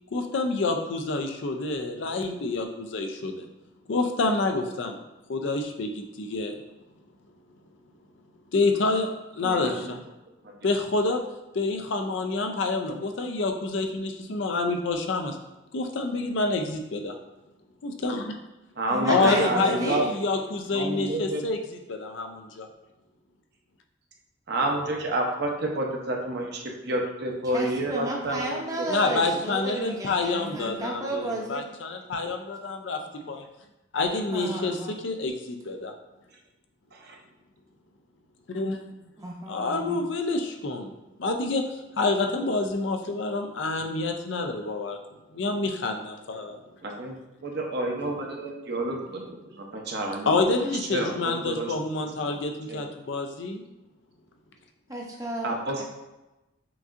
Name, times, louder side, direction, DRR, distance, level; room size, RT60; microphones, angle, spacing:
voice 1, 0.1-3.5 3.9-5.0 5.3-6.6 8.5-9.1 9.4-10.0 10.6-11.2 11.5-15.4 15.7-17.1 17.8-18.4 19.1-22.7 28.9-33.0 33.3-33.4 33.9-34.8 35.0-35.9 38.5-38.8 39.5-40.9 41.2-41.6 42.0-45.0 45.3-46.6 50.3-53.6, left 3 dB, 65° left, 4 dB, 0.5 m, -27 dB
voice 2, 9.4-9.8 18.8-20.0 20.7-21.4 24.5-29.2 36.9-37.2 46.8-47.1 47.4-50.3 50.9-51.1 51.4-51.7 52.2-52.3 52.7-52.9 55.4-55.8, right 1 dB, 55° right, 0 dB, 0.7 m, -29 dB
voice 3, 18.9-20.0 27.4-31.6 34.3-34.9 39.2-40.0 54.9-55.8, right 1 dB, 15° right, -2 dB, 0.7 m, -33 dB
5.9 x 2.7 x 2.5 m, 1.0 s
head